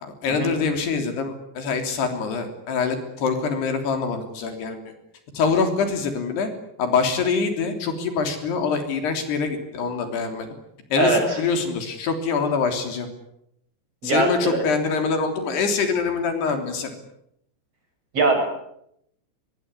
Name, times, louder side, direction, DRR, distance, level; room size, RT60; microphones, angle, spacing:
voice 1, 0.0-4.8 5.3-6.5 6.8-10.5 10.9-13.1 14.0-17.0, left 5 dB, 70° left, 6 dB, 5.3 m, -24 dB
voice 2, 11.0-11.4 14.0-14.6 18.1-18.5, right 3 dB, 35° right, 4 dB, 8.2 m, -21 dB
24.0 x 22.5 x 9.7 m, 0.76 s
omnidirectional pair, 4.9 m